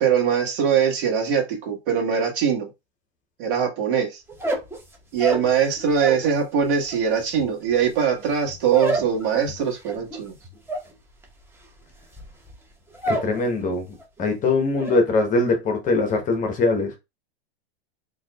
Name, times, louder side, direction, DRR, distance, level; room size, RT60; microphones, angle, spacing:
voice 1, 0.0-2.7 3.4-4.2 5.1-10.3, right 7 dB, 55° right, 1.4 m, -22 dB
sound 1, 4.3-6.3 6.6-13.4 13.7-14.2 14.5-15.0, right 2 dB, 5° right, 0.7 m, -30 dB
voice 2, 13.1-13.9 14.2-16.9, left 3 dB, 25° left, 0.8 m, -22 dB
3.8 x 2.7 x 2.3 m
hypercardioid pair, 115°, 32 cm